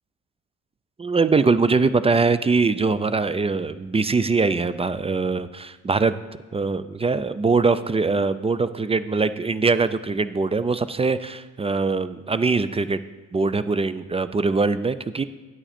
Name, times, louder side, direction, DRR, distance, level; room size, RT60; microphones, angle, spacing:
voice 1, 1.0-6.1 6.5-13.0 13.3-15.2, right 4 dB, 20° right, 13 dB, 0.4 m, -22 dB
8.9 x 8.8 x 4.2 m, 1.3 s
cardioid pair, 90°, 30 cm